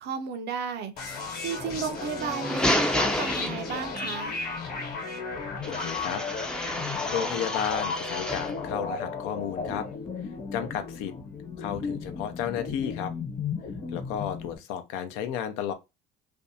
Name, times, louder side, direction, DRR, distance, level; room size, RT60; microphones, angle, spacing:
voice 1, 0.0-4.4, right 6 dB, 55° right, 0.5 m, -34 dB
sound 1, 1.0-14.6, left 4 dB, 50° left, 1.0 m, -35 dB
sound 2, 2.1-4.1 5.6-8.6, left 1 dB, 5° left, 0.4 m, -30 dB
voice 2, 5.7-6.2 7.1-9.9 10.5-11.1 11.6-13.1 13.9-15.7, left 9 dB, 75° left, 0.5 m, -32 dB
2.5 x 2.1 x 2.6 m
supercardioid pair, 80°, 21 cm